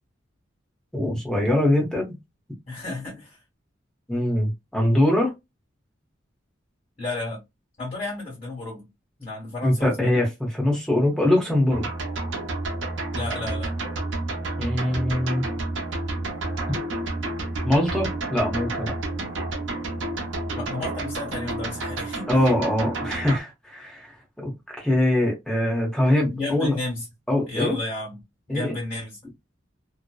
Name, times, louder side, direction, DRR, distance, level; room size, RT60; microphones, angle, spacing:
voice 1, 0.9-2.2 4.1-5.3 9.6-11.9 14.6-15.4 17.6-18.9 22.3-26.7 27.3-27.7 28.5-28.8, left 1 dB, 5° left, 0.7 m, -23 dB
voice 2, 2.7-3.4 7.0-7.4 7.8-8.9 9.2-10.1 13.1-13.7 20.5-22.3 26.3-27.0 27.5-28.2 28.5-29.2, left 2 dB, 35° left, 1.2 m, -32 dB
sound 1, 11.7-23.4, right 2 dB, 80° right, 0.7 m, -30 dB
2.6 x 2.1 x 2.2 m
head